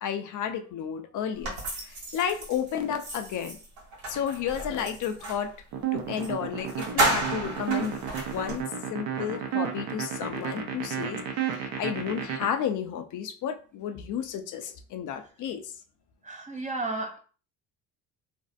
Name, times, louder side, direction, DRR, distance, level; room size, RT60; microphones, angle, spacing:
voice 1, 0.0-3.6 4.1-5.5 5.9-15.7, left 8 dB, 55° left, 0.5 m, -32 dB
sound 1, 1.4-5.5 6.2-6.3 6.6-8.6, right 2 dB, 85° right, 1.3 m, -32 dB
sound 2, 5.7-12.5, right 9 dB, 65° right, 0.7 m, -31 dB
voice 2, 16.2-17.2, right 2 dB, 20° right, 0.5 m, -33 dB
2.5 x 2.0 x 2.4 m
supercardioid pair, 85°, 37 cm